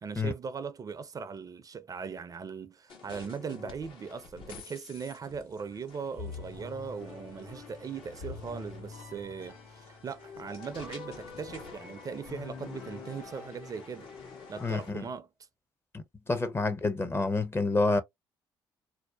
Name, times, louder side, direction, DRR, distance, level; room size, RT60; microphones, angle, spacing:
voice 1, 0.0-14.1 14.5-15.3, right 6 dB, 40° right, 0.4 m, -39 dB
sound 1, 2.9-14.9, left 5 dB, 65° left, 0.8 m, -51 dB
sound 2, 6.2-14.7, left 4 dB, 85° left, 1.3 m, -45 dB
voice 2, 14.6-15.0 15.9-18.0, left 3 dB, 25° left, 0.6 m, -28 dB
2.6 x 2.1 x 2.3 m
hypercardioid pair, 60°, 10 cm